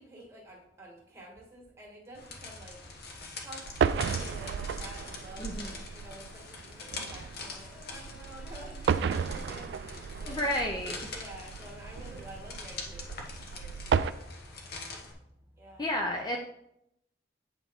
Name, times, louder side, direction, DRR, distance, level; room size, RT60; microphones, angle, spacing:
voice 1, 0.0-10.6 11.1-14.8 15.0-15.9, right 1 dB, 15° right, -2 dB, 1.8 m, -50 dB
sound 1, 2.1-15.1, left 3 dB, 60° left, 1.1 m, -44 dB
sound 2, 3.7-14.1, right 6 dB, 65° right, 0.3 m, -33 dB
voice 2, 5.4-5.7 10.3-11.0 15.8-16.4, left 1 dB, 25° left, 2 dB, 0.5 m, -31 dB
8.2 x 5.1 x 3.6 m, 0.78 s
head